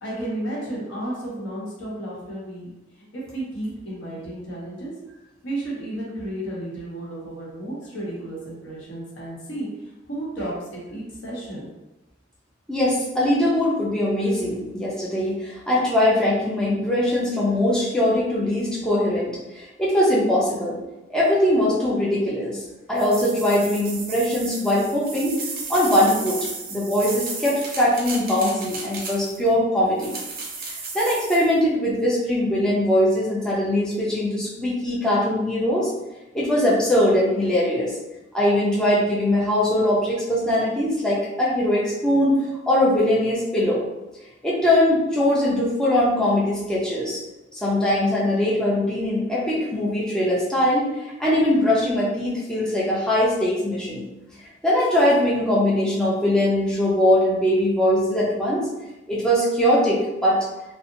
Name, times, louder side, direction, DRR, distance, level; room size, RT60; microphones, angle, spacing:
voice 1, 0.0-2.7 2.9-4.9 5.4-11.7, right 1 dB, 70° left, -5 dB, 0.9 m, -33 dB
voice 2, 12.7-20.8 21.1-22.6 22.9-25.4 25.7-26.4 26.7-30.1 30.9-35.9 36.3-37.9 38.3-42.3 42.7-43.8 44.4-47.2 47.6-50.9 51.2-54.0 54.6-58.7 59.1-60.5, left 1 dB, 5° left, -7 dB, 0.5 m, -21 dB
sound 1, 23.0-29.5 30.0-31.5, right 3 dB, 50° right, 0.5 m, -34 dB
2.7 x 2.0 x 2.6 m, 1.0 s
head